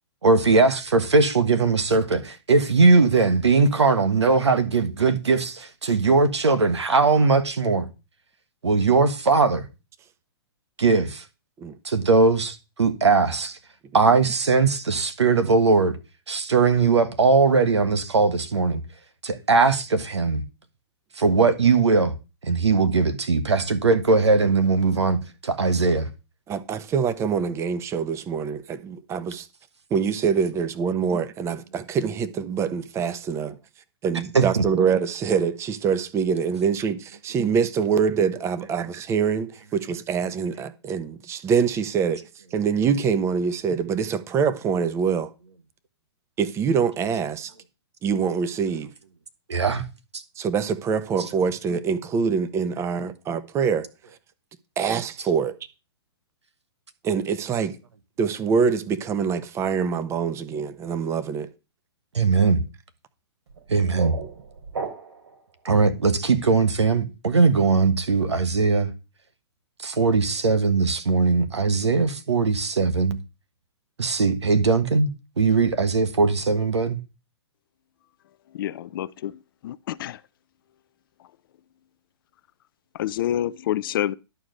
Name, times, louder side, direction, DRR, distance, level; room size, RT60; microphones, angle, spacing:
voice 1, 0.2-7.9 8.6-9.6 10.8-11.2 11.8-13.6 13.9-16.0 16.3-18.8 19.2-20.4 21.1-22.1 22.4-26.1 34.3-34.6 49.5-49.8 50.1-50.2 62.1-62.6 63.7-64.1 65.6-68.9 69.8-73.2 74.0-77.0, right 4 dB, 90° right, 1.5 m, -20 dB
voice 2, 26.5-29.5 29.9-33.6 34.0-42.2 42.5-45.3 46.4-47.5 48.0-48.9 50.4-53.9 54.8-55.5 57.0-57.8 58.2-61.5, right 6 dB, 20° right, 0.9 m, -25 dB
sound 1, 63.5-65.4, right 5 dB, 75° right, 4.0 m, -35 dB
voice 3, 78.5-80.2 82.9-84.1, left 12 dB, 55° left, 0.5 m, -28 dB
11.5 x 4.8 x 6.4 m
hypercardioid pair, 130°, 14 cm